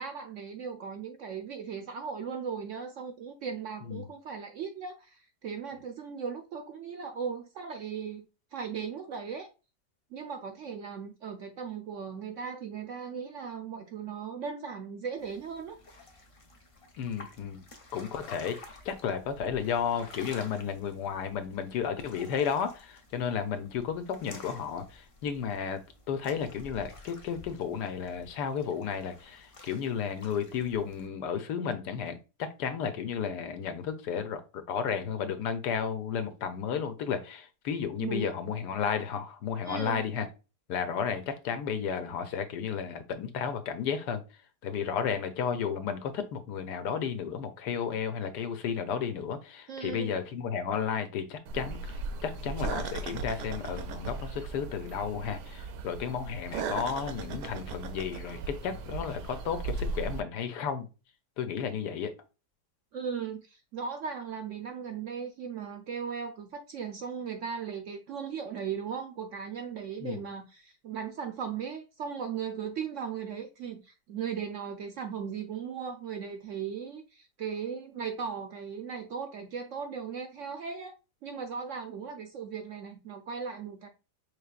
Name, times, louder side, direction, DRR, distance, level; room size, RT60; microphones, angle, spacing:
voice 1, 0.0-8.2 8.5-9.5 10.1-15.8 38.0-38.3 39.7-40.0 49.7-50.2 62.9-80.9 81.2-83.9, right 6 dB, 65° right, 0.7 m, -37 dB
sound 1, 15.2-31.1, left 2 dB, 45° left, 0.4 m, -52 dB
voice 2, 17.0-17.6 17.9-18.6 18.8-25.8 26.1-40.3 40.7-44.2 44.6-60.9 61.4-62.1 70.0-70.2, left 7 dB, 80° left, 1.3 m, -33 dB
sound 2, 51.5-60.2, right 4 dB, 85° right, 1.2 m, -37 dB
5.1 x 3.3 x 2.4 m
omnidirectional pair, 1.8 m